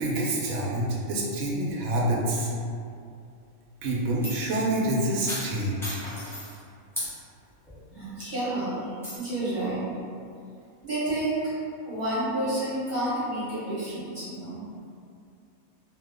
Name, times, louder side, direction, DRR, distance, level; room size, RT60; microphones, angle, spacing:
voice 1, 0.0-2.5 3.8-6.0, right 1 dB, 70° right, -3 dB, 1.0 m, -27 dB
sound 1, 3.9-4.6 5.3-6.6 6.9-7.1 7.7-7.8 8.2-8.5 9.0-9.2, equal, 5° left, 0.4 m, -36 dB
voice 2, 7.9-8.9 9.2-9.8 10.8-11.5 11.8-14.6, right 1 dB, 25° right, -15 dB, 1.1 m, -30 dB
2.7 x 2.2 x 3.4 m, 2.4 s
omnidirectional pair, 1.6 m